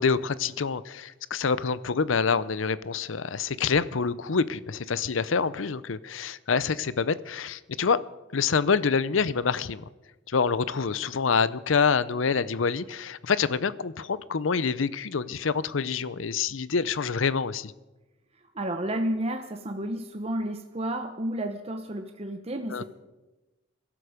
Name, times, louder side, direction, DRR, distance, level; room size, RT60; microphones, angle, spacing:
voice 1, 0.0-8.1 8.3-9.8 10.3-17.7 22.7-22.8, left 5 dB, 75° left, 17 dB, 0.6 m, -26 dB
voice 2, 18.5-22.8, right 1 dB, 30° right, 5 dB, 0.9 m, -31 dB
22.0 x 12.5 x 5.1 m, 1.1 s
head